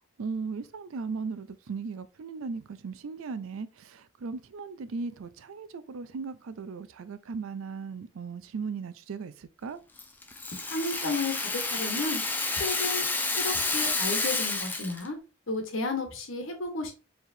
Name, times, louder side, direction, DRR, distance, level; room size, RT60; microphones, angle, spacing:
voice 1, 0.2-9.8, right 4 dB, 90° right, 0.4 m, -37 dB
Rattle (instrument), 10.0-15.1, left 3 dB, 10° left, 0.4 m, -30 dB
voice 2, 10.7-12.2 12.5-13.1 13.4-15.2 15.5-16.9, left 3 dB, 80° left, 1.2 m, -32 dB
4.6 x 3.3 x 2.7 m
head